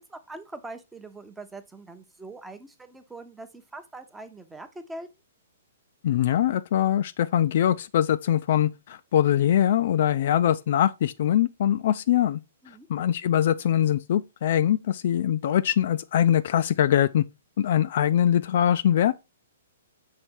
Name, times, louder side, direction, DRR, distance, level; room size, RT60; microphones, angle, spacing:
voice 1, 0.1-5.1 12.6-12.9, right 2 dB, 10° right, 0.7 m, -42 dB
voice 2, 6.0-12.4 12.9-17.2 17.6-19.2, left 10 dB, 50° left, 0.3 m, -22 dB
6.5 x 3.5 x 4.4 m
figure-of-eight pair, 115°, 0 cm